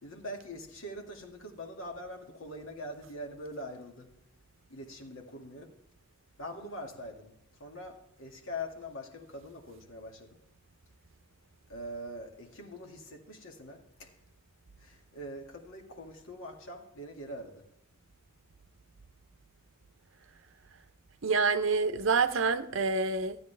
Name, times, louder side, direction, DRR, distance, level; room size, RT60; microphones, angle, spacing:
voice 1, 0.0-4.1 4.7-5.7 6.4-10.4 11.7-14.2 14.8-17.7, left 1 dB, 70° left, 2.0 m, -43 dB
voice 2, 21.2-23.4, right 4 dB, 65° right, 0.7 m, -27 dB
13.5 x 9.4 x 3.4 m
head